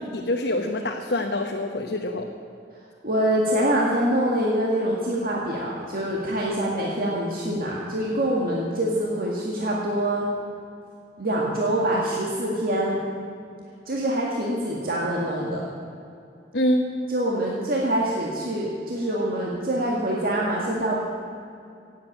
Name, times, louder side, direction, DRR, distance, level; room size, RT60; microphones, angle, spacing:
voice 1, 0.1-2.2 16.5-16.9, left 1 dB, 65° left, 2 dB, 1.1 m, -25 dB
voice 2, 3.0-10.3 11.2-13.0 13.9-15.6 17.1-21.0, right 1 dB, 55° right, -3 dB, 2.0 m, -25 dB
17.0 x 8.5 x 9.0 m, 2.5 s
head